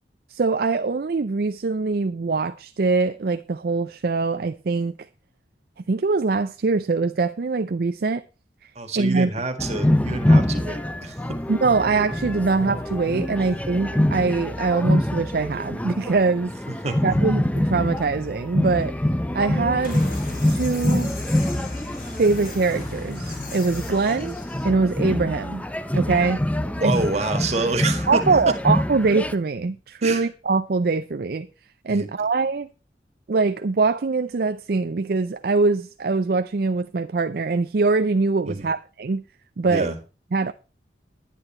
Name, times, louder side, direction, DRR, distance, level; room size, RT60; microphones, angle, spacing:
voice 1, 0.3-4.9 5.9-8.2 8.6-9.3 11.5-16.5 17.0-19.0 19.3-20.0 20.4-21.1 22.2-24.3 24.6-25.6 25.9-26.4 26.8-26.9 28.1-31.5 31.8-32.7 33.3-39.2 39.6-39.9 40.3-40.5, right 4 dB, 55° right, 0.5 m, -23 dB
voice 2, 8.7-11.2 16.7-17.0 26.2-26.4 26.7-28.2 30.0-30.3 31.9-32.1 38.5-38.7 39.7-39.9, right 3 dB, 40° right, 1.7 m, -27 dB
sound 1, 9.6-29.3, left 1 dB, 10° left, 0.5 m, -25 dB
sound 2, 19.8-24.6, left 2 dB, 50° left, 3.6 m, -37 dB
11.0 x 10.0 x 4.3 m
head